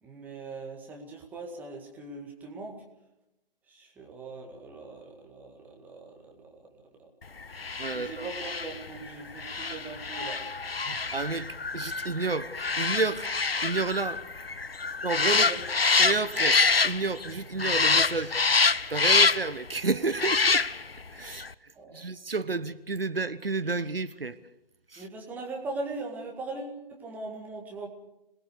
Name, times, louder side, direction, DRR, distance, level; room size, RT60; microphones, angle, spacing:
voice 1, 0.0-2.8 3.7-6.6 7.9-10.4 15.3-15.6 21.8-22.1 25.0-27.9, right 3 dB, 5° right, 1.9 m, -40 dB
sound 1, 7.5-17.3 17.6-19.6 20.1-21.0 21.3-21.5, left 4 dB, 80° left, 0.9 m, -26 dB
voice 2, 7.8-8.3 10.8-13.3 13.6-14.2 15.0-15.5 16.0-20.7 21.1-24.4 24.9-25.1, right 3 dB, 75° right, 1.2 m, -31 dB
26.0 x 19.5 x 6.7 m
figure-of-eight pair, 145°, 29 cm